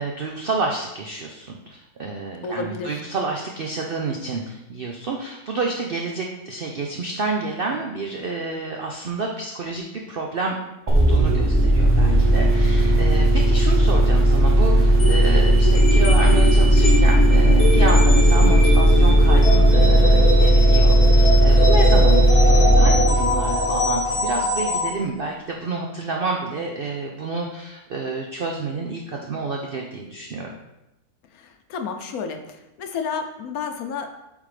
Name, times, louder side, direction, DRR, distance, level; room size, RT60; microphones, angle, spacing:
voice 1, 0.0-10.6 10.9-30.5, right 3 dB, 70° right, 1 dB, 0.5 m, -29 dB
voice 2, 2.4-3.0 31.3-32.4 32.8-34.1, left 5 dB, 70° left, 6 dB, 1.0 m, -30 dB
sound 1, 10.9-24.3, right 1 dB, 15° right, 0.5 m, -16 dB
sound 2, 15.0-24.9, left 2 dB, 40° left, 0.5 m, -24 dB
8.3 x 3.6 x 3.2 m, 0.93 s
omnidirectional pair, 1.7 m